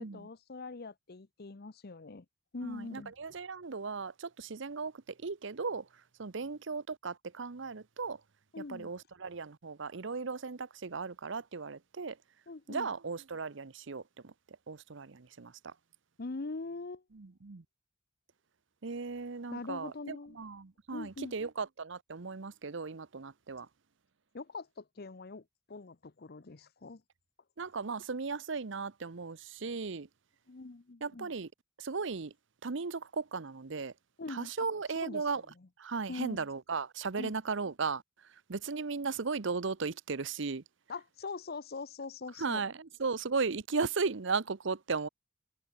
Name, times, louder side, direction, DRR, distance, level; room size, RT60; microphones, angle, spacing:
voice 1, 0.0-2.2 2.5-3.1 8.5-8.9 12.5-12.9 16.2-17.0 19.5-20.4 20.9-21.3 24.3-27.0 30.5-31.3 34.2-34.7 35.0-35.2 36.1-36.5 37.2-37.3 40.9-42.6, left 3 dB, 50° left, 0.8 m, -42 dB
voice 2, 2.6-5.9 6.2-8.2 8.6-12.2 12.7-14.3 14.7-15.7 17.1-17.6 18.8-23.7 27.6-30.1 31.0-31.5 31.8-32.3 32.6-33.9 34.3-35.4 35.8-38.0 38.5-40.6 42.4-45.1, right 4 dB, 65° right, 0.8 m, -36 dB
head